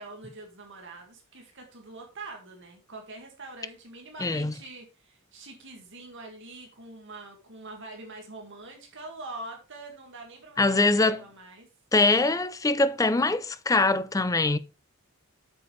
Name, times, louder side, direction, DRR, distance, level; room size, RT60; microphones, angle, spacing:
voice 1, 0.0-11.7, right 2 dB, 55° right, 2.0 m, -44 dB
voice 2, 4.2-4.5 10.6-11.2 11.9-14.6, left 3 dB, 15° left, 0.4 m, -23 dB
8.3 x 6.9 x 3.3 m
head